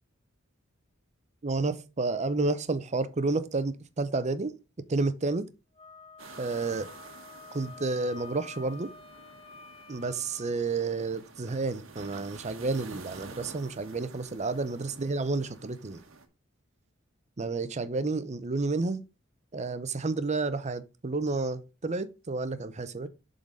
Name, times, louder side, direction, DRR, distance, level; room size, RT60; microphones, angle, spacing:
voice 1, 1.4-4.5 4.9-5.5 6.4-6.9 7.5-8.9 9.9-16.0 17.4-19.0 19.5-23.1, right 3 dB, 35° right, 0.6 m, -30 dB
Wind instrument woodwind instrument, 5.8-10.5, left 4 dB, 30° left, 0.9 m, -49 dB
sound 1, 6.2-16.3, right 4 dB, 80° right, 1.2 m, -49 dB
7.2 x 3.9 x 5.1 m
head